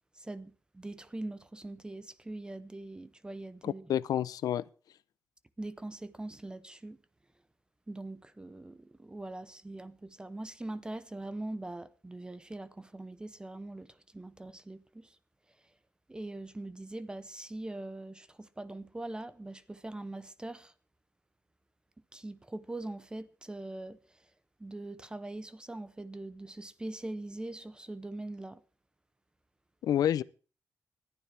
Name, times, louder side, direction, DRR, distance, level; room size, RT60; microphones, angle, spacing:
voice 1, 0.1-3.9 5.6-7.0 7.9-15.2 16.1-20.7 22.1-24.3 24.6-28.6, right 2 dB, 15° right, 0.7 m, -42 dB
voice 2, 3.6-4.6 29.8-30.2, left 10 dB, 75° left, 0.6 m, -29 dB
19.5 x 12.0 x 3.5 m
cardioid pair, 105°, 6 cm